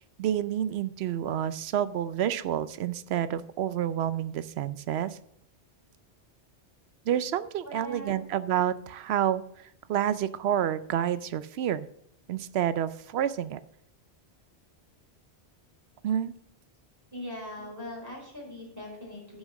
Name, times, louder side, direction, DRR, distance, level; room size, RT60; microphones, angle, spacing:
voice 1, 0.2-5.2 7.1-11.9 12.3-13.6 16.0-16.3, right 10 dB, 75° right, 15 dB, 0.8 m, -29 dB
voice 2, 7.6-8.3 17.1-19.4, left 1 dB, 15° right, -2 dB, 4.3 m, -40 dB
9.8 x 6.4 x 6.2 m, 0.72 s
omnidirectional pair, 1.1 m